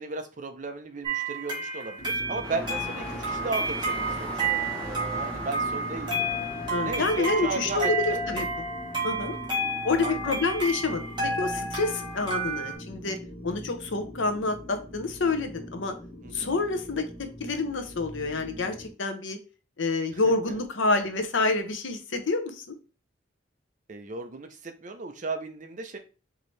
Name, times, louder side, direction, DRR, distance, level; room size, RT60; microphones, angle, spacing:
voice 1, 0.0-6.3 6.8-8.4 10.0-10.4 16.2-16.6 20.1-20.6 23.9-26.0, right 3 dB, 40° right, 6 dB, 0.6 m, -36 dB
sound 1, 1.0-12.7, right 2 dB, 25° right, 1.5 m, -31 dB
sound 2, 2.0-18.9, equal, 50° left, 1.4 m, -41 dB
sound 3, 2.4-7.7, left 2 dB, 5° left, 1.0 m, -40 dB
voice 2, 6.7-8.5 9.0-9.4 9.8-13.2 13.4-15.9 16.3-17.0 17.4-19.4 19.8-22.7, left 3 dB, 80° left, 6 dB, 0.8 m, -28 dB
4.8 x 2.8 x 3.1 m, 0.33 s
head